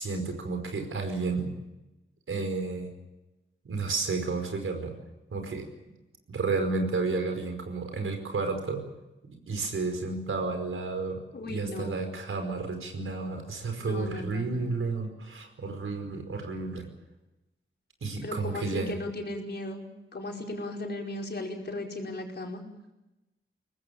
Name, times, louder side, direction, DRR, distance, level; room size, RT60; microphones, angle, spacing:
voice 1, 0.0-1.6 2.3-2.9 3.6-5.0 5.3-5.7 6.3-8.8 9.3-16.9 18.0-18.9, right 3 dB, 80° right, 6 dB, 5.1 m, -31 dB
voice 2, 11.3-11.9 13.7-14.6 18.2-19.9 20.1-22.6, left 2 dB, 55° left, 1 dB, 5.1 m, -36 dB
23.5 x 19.5 x 8.7 m, 0.99 s
wide cardioid pair, 100°, 21 cm